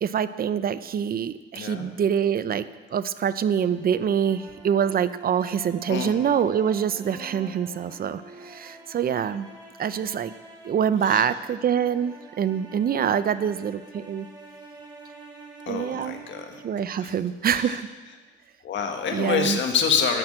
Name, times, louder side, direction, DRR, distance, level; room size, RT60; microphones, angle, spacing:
voice 1, 0.0-2.7 2.9-9.5 9.8-10.3 10.6-14.3 15.7-16.2 16.6-17.9 19.1-19.6, right 8 dB, 50° right, 14 dB, 0.5 m, -25 dB
voice 2, 1.5-1.9 5.9-6.2 11.0-11.3 15.7-16.6 17.0-17.2 17.4-17.8 18.6-20.2, left 6 dB, 70° left, 4 dB, 1.6 m, -27 dB
sound 1, 3.5-17.7, right 2 dB, 20° right, 4.1 m, -46 dB
12.5 x 6.1 x 8.7 m, 1.3 s
cardioid pair, 90°, 20 cm